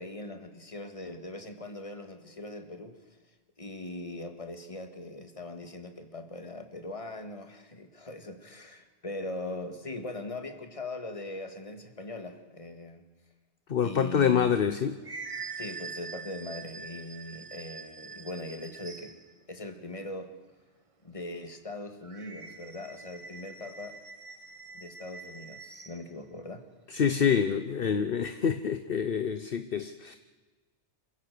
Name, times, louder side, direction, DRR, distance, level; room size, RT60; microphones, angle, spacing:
voice 1, 0.0-2.9 3.6-13.0 13.8-14.5 15.6-19.1 19.5-20.3 21.0-24.0 24.7-26.6, left 2 dB, 30° left, 7 dB, 1.9 m, -40 dB
voice 2, 13.7-14.9 26.9-30.2, left 7 dB, 55° left, 10 dB, 1.0 m, -26 dB
sound 1, 14.5-19.3 22.0-26.0, right 4 dB, 30° right, 1.1 m, -44 dB
27.5 x 15.5 x 6.8 m, 1.3 s
omnidirectional pair, 1.2 m